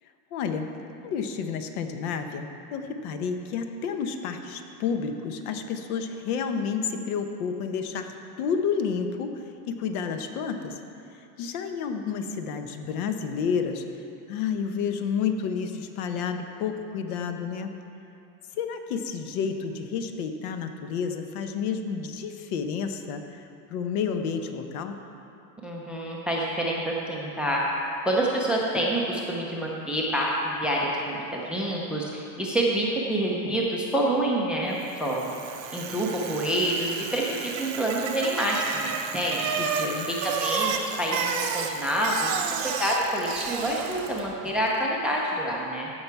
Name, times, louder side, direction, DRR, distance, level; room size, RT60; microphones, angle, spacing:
voice 1, 0.3-0.7 1.0-8.1 8.4-9.3 9.7-10.7 11.4-13.8 14.3-17.7 18.5-25.0 39.6-40.1, left 6 dB, 60° left, 6 dB, 1.0 m, -30 dB
voice 2, 25.6-27.6 28.0-35.3 35.7-39.7 40.1-45.9, right 1 dB, ahead, -3 dB, 0.5 m, -27 dB
Bicycle, 34.9-44.3, right 6 dB, 35° right, 0.7 m, -32 dB
15.0 x 5.7 x 4.6 m, 2.7 s
supercardioid pair, 140°, 49 cm